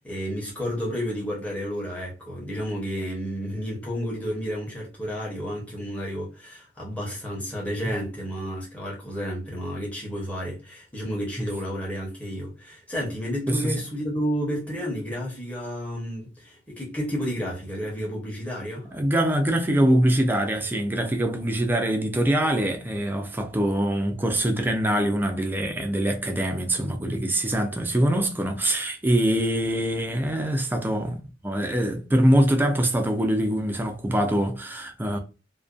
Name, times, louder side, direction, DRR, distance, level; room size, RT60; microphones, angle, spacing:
voice 1, 0.0-18.9, equal, 10° left, 0.8 m, -31 dB
voice 2, 18.9-35.2, right 1 dB, 10° right, 0.4 m, -24 dB
2.5 x 2.1 x 2.3 m
head